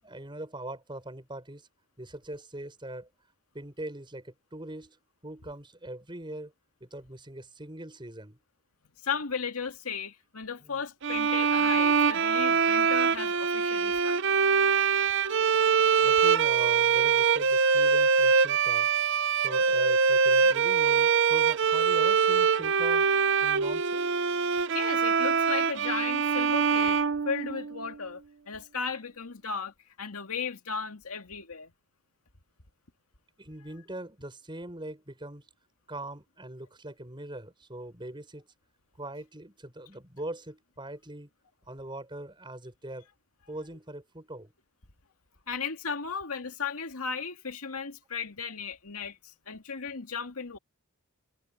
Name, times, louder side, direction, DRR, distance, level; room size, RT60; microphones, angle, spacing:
voice 1, 0.0-1.7 2.0-3.1 3.5-5.0 5.2-6.5 6.8-8.4 10.6-10.8 13.4-13.5 16.0-18.9 19.4-23.1 23.4-24.1 33.4-35.5 35.9-38.5 39.0-41.3 41.7-43.1 43.5-44.5, right 1 dB, 20° right, 6.3 m, -42 dB
voice 2, 9.0-14.3 24.7-28.2 28.5-31.7 45.5-50.6, left 5 dB, 85° left, 2.2 m, -35 dB
sound 1, 11.0-27.9, right 6 dB, 60° right, 0.7 m, -24 dB
head